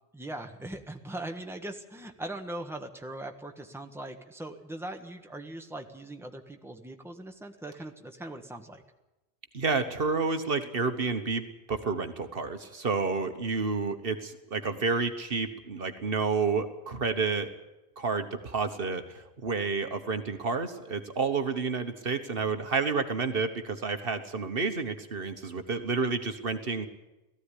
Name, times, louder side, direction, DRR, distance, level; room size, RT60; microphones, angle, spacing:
voice 1, 0.1-8.8, right 1 dB, ahead, 4 dB, 1.4 m, -40 dB
voice 2, 9.5-17.5 18.0-26.9, right 4 dB, 60° right, 8 dB, 1.4 m, -30 dB
18.0 x 14.5 x 10.0 m, 1.0 s
omnidirectional pair, 1.1 m